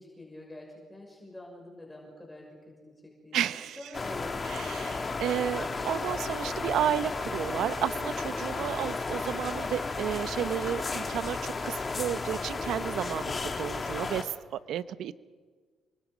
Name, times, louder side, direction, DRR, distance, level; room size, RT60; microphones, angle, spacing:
voice 1, 0.0-3.4 3.7-4.5, left 1 dB, 10° left, -1 dB, 6.1 m, -46 dB
voice 2, 3.3-3.8 4.4-15.1, right 10 dB, 75° right, 14 dB, 0.9 m, -32 dB
sound 1, 3.9-14.2, left 3 dB, 30° left, 2.7 m, -33 dB
29.0 x 24.0 x 5.2 m, 1.5 s
cardioid pair, 90°, 0 cm